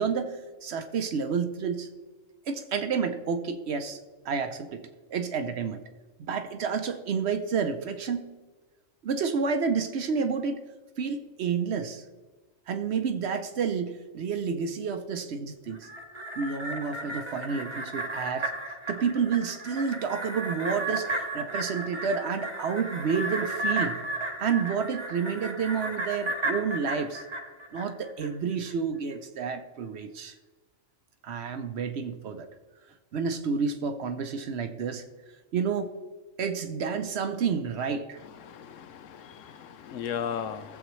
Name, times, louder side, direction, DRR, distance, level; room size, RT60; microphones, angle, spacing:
voice 1, 0.0-1.9 2.5-4.0 4.2-4.8 5.1-5.8 6.2-8.3 9.0-10.6 11.0-12.0 12.7-15.9 16.4-18.5 18.9-24.0 24.4-27.2 27.7-30.3 31.2-32.5 33.1-35.0 35.5-35.9 36.4-38.2, right 6 dB, 60° right, 8 dB, 0.9 m, -30 dB
sound 1, 15.7-28.3 28.7-28.8, right 1 dB, 25° right, 1.1 m, -34 dB
voice 2, 38.5-40.8, left 8 dB, 75° left, 11 dB, 1.0 m, -36 dB
17.0 x 7.3 x 3.1 m, 1.3 s
omnidirectional pair, 1.3 m